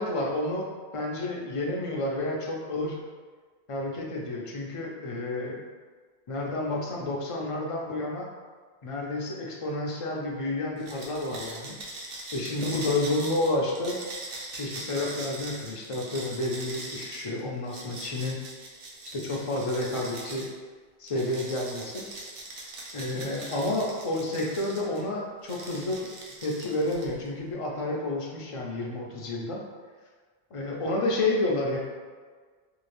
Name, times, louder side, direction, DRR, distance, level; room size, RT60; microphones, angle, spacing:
voice 1, 0.0-3.0 3.7-5.6 6.3-8.3 8.8-11.8 12.3-14.0 14.5-18.4 19.1-20.5 21.0-22.1 22.9-26.1 26.4-29.6 30.5-31.8, left 2 dB, 55° left, -2 dB, 0.3 m, -30 dB
sound 1, 10.8-20.5 21.1-25.0 25.4-27.3, right 2 dB, 65° right, 0.8 m, -41 dB
2.8 x 2.4 x 3.2 m, 1.5 s
omnidirectional pair, 1.1 m